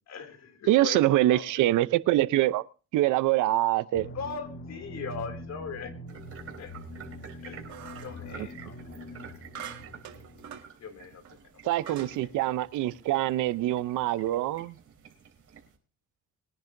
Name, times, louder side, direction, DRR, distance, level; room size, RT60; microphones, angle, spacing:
voice 1, 0.1-1.4 4.1-5.9 6.6-6.7 7.4-8.8 10.8-11.5 11.8-11.9 12.2-12.3, left 5 dB, 60° left, 2.8 m, -40 dB
voice 2, 0.7-2.6 2.9-4.1 8.4-8.5 11.6-14.8, right 15 dB, 90° right, 0.7 m, -24 dB
sound 1, 3.9-10.6, left 1 dB, 40° left, 1.9 m, -43 dB
sound 2, 6.1-15.8, right 7 dB, 50° right, 3.8 m, -50 dB
sound 3, 7.7-8.2 9.6-10.7 11.2-11.3 11.9-12.2, right 8 dB, 65° right, 2.1 m, -43 dB
22.0 x 10.5 x 2.6 m
cardioid pair, 90°, 30 cm